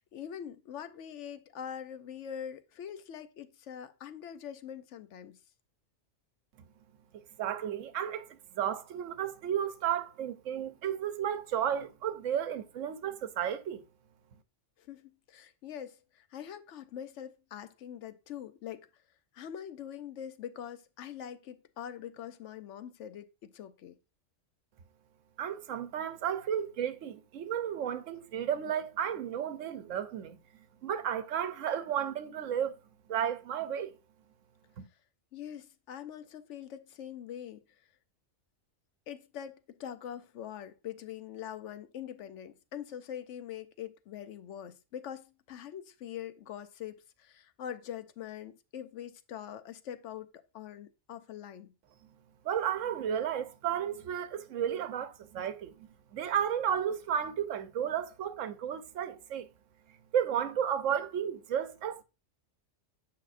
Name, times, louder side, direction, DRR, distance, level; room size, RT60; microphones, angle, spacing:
voice 1, 0.0-5.4 14.8-18.9 19.3-24.0 35.3-37.6 39.1-51.7, left 9 dB, 70° left, 0.9 m, -43 dB
voice 2, 7.1-13.8 25.4-30.4 30.8-32.8 33.1-33.9 34.8-34.9 52.4-59.5 60.1-62.0, right 9 dB, 80° right, 1.0 m, -33 dB
8.6 x 5.6 x 2.5 m
omnidirectional pair, 1.3 m